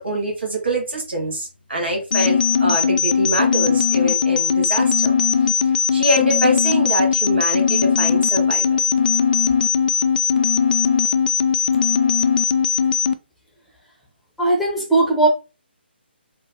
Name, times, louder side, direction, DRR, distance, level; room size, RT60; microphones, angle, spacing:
voice 1, 0.0-5.1 5.9-8.8, right 1 dB, 75° right, 1.6 m, -24 dB
sound 1, 2.1-13.1, left 7 dB, 50° left, 0.4 m, -19 dB
voice 2, 14.4-15.3, right 2 dB, ahead, 0.8 m, -17 dB
3.7 x 2.2 x 2.8 m
figure-of-eight pair, 140°, 6 cm